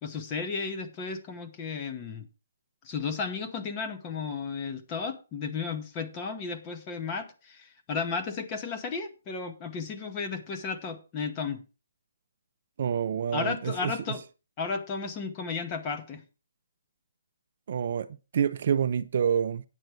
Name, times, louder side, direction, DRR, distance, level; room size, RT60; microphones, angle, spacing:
voice 1, 0.0-2.3 2.8-11.6 13.3-14.2 14.6-16.2, left 5 dB, 15° left, 0.8 m, -34 dB
voice 2, 12.8-13.9 17.7-18.1 18.3-19.6, right 8 dB, 40° right, 0.5 m, -27 dB
9.1 x 7.9 x 4.6 m
hypercardioid pair, 175°, 0 cm